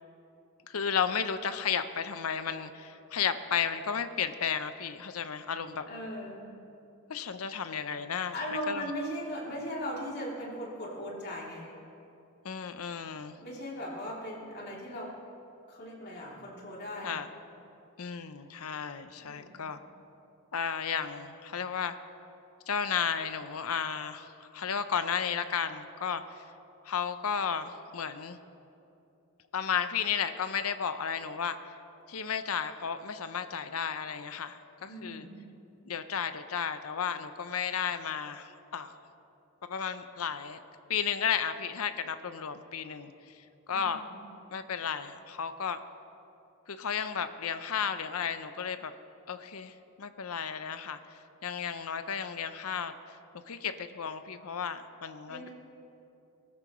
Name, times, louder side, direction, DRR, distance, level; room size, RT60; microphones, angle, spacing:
voice 1, 0.7-5.9 7.1-8.3 8.7-8.8 12.4-13.4 17.0-17.3 18.0-19.8 20.5-22.0 22.7-26.4 26.8-28.4 29.5-31.6 32.1-35.3 35.8-39.0 39.7-40.6 40.9-43.4 43.7-44.0 44.5-45.8 46.7-48.9 49.3-51.0 51.4-53.2 53.5-55.5, left 7 dB, 85° left, 10 dB, 0.7 m, -33 dB
voice 2, 5.9-6.5 8.3-11.7 13.4-15.1 15.7-17.2 19.2-19.7 34.8-35.4 43.7-44.0 55.3-55.5, equal, 45° left, -4 dB, 3.0 m, -38 dB
21.5 x 13.5 x 3.1 m, 2.7 s
head